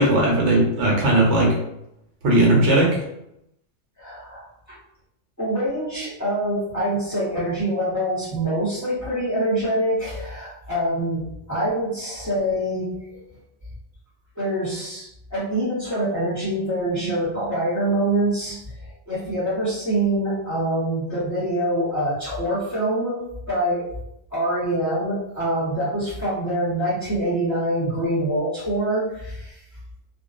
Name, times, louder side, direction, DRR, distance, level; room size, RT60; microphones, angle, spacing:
voice 1, 0.0-1.5 2.2-3.0, right 1 dB, 70° right, -3 dB, 1.0 m, -17 dB
voice 2, 4.0-4.8 5.4-13.2 14.4-23.2 23.5-23.9 24.3-29.6, right 1 dB, 15° left, -10 dB, 1.0 m, -25 dB
2.4 x 2.2 x 2.4 m, 0.81 s
omnidirectional pair, 1.3 m